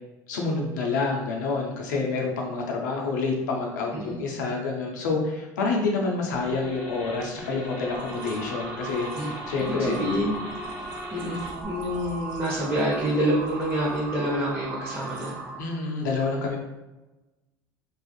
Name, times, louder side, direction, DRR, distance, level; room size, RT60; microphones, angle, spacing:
voice 1, 0.3-10.0 15.6-16.6, left 3 dB, 85° left, 0 dB, 0.5 m, -28 dB
sound 1, 6.3-11.6, left 1 dB, 15° left, 1.2 m, -40 dB
sound 2, 7.7-15.8, right 3 dB, 85° right, 0.5 m, -38 dB
voice 2, 9.6-10.4 11.1-15.4, equal, 20° right, -8 dB, 0.9 m, -27 dB
2.4 x 2.4 x 2.4 m, 1.1 s
hypercardioid pair, 75°, 10 cm